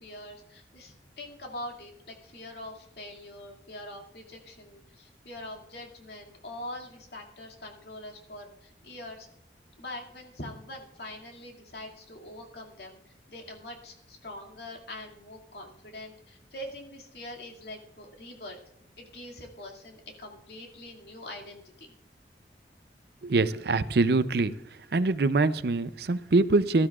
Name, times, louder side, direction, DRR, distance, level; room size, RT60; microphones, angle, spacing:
voice 1, 0.0-9.3 9.8-18.6 19.0-21.9, left 1 dB, 70° left, 1 dB, 2.4 m, -43 dB
voice 2, 23.2-24.5 24.9-26.9, right 3 dB, 65° right, 14 dB, 0.5 m, -24 dB
18.5 x 12.5 x 2.4 m, 0.75 s
head